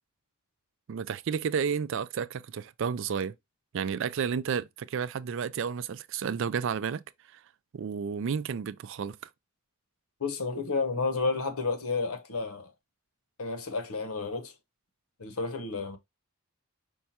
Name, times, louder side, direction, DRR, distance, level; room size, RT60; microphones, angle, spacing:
voice 1, 0.9-3.3 3.7-7.0 7.7-9.2, right 6 dB, 60° right, 0.3 m, -31 dB
voice 2, 10.2-12.7 13.4-14.5 15.2-16.0, left 4 dB, 75° left, 0.9 m, -31 dB
5.4 x 2.3 x 4.2 m
head